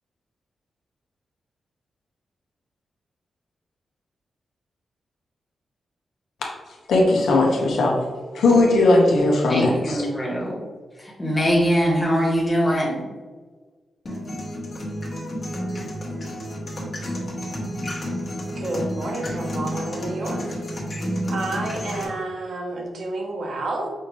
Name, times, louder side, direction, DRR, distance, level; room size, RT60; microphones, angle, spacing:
voice 1, 6.9-8.0 8.3-10.1, left 2 dB, 90° left, -1 dB, 1.1 m, -18 dB
voice 2, 9.5-10.6 11.2-13.0, equal, 10° left, -3 dB, 1.3 m, -22 dB
sound 1, 14.1-22.0, equal, 45° left, 1.2 m, -30 dB
voice 3, 18.6-20.6 21.3-23.9, right 2 dB, 70° right, 0 dB, 1.1 m, -30 dB
5.6 x 2.8 x 3.1 m, 1.4 s
cardioid pair, 90°, 0 cm